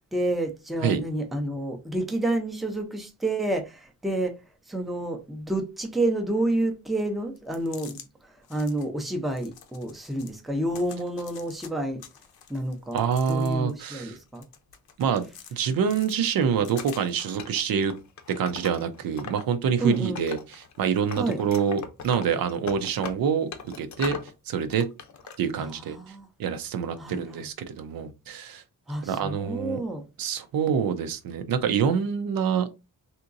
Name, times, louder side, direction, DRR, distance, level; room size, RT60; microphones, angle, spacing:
voice 1, 0.1-4.4 4.7-8.0 8.2-12.0 12.5-13.0 13.3-14.4 19.8-20.2 21.2-21.4 25.6-26.3 27.0-27.5 28.9-30.1, right 1 dB, ahead, 0.5 m, -29 dB
sound 1, 7.4-8.1 8.4-8.9 9.3-10.4 10.7-11.7 12.0-13.8 14.2-15.5 15.9-17.3, left 8 dB, 85° left, 0.7 m, -47 dB
voice 2, 12.9-14.2 15.0-15.2 15.5-17.9 18.4-23.5 23.8-24.2 24.5-24.9 25.4-26.0 26.4-28.6 29.0-29.8 30.2-32.7, right 7 dB, 70° right, 0.6 m, -26 dB
Wood, 16.8-19.4 19.7-20.8 21.1-24.3 24.7-25.4, left 6 dB, 50° left, 0.6 m, -40 dB
3.5 x 2.8 x 2.5 m
wide cardioid pair, 145°, 36 cm